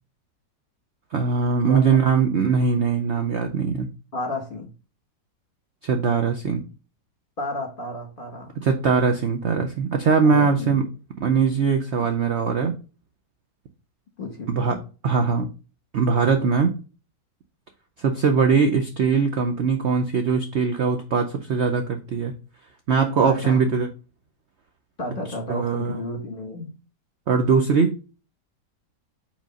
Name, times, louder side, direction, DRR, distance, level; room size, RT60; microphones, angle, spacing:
voice 1, 1.1-3.9 5.8-6.6 8.6-10.8 11.2-12.7 14.5-15.5 15.9-16.7 18.0-22.3 22.9-23.9 25.5-26.0 27.3-28.0, right 5 dB, 60° right, 0.7 m, -21 dB
voice 2, 1.7-2.0 4.1-4.7 7.4-8.5 10.2-10.8 12.0-12.1 14.2-14.8 23.2-23.6 25.0-26.7, left 1 dB, 30° left, 1.4 m, -32 dB
5.1 x 3.7 x 5.1 m
omnidirectional pair, 1.9 m